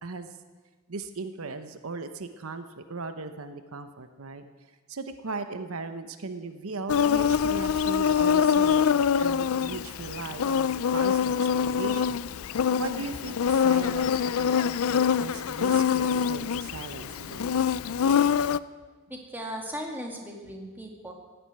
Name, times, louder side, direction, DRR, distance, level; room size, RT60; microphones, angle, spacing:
voice 1, 0.0-0.4 0.9-4.4 4.9-12.3 12.8-14.1 14.4-17.6, right 3 dB, 80° right, 9 dB, 0.9 m, -38 dB
Insect, 6.9-18.6, left 7 dB, 80° left, 0.4 m, -25 dB
voice 2, 19.1-21.1, equal, 10° right, 0 dB, 2.2 m, -37 dB
16.5 x 8.0 x 9.0 m, 1.4 s
head